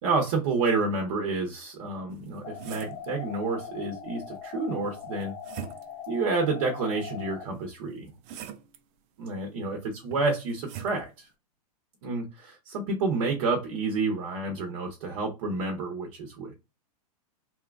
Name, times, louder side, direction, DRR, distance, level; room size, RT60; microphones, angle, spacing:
voice 1, 0.0-5.4 6.1-8.1 9.2-11.3 12.0-16.6, right 3 dB, 55° right, 0.9 m, -29 dB
sound 1, 2.1-3.1 4.8-6.1 7.5-8.8 10.1-11.0, right 8 dB, 35° right, 0.4 m, -43 dB
sound 2, 2.4-7.4, left 8 dB, 25° left, 0.6 m, -41 dB
3.0 x 2.2 x 2.2 m
hypercardioid pair, 115°, 20 cm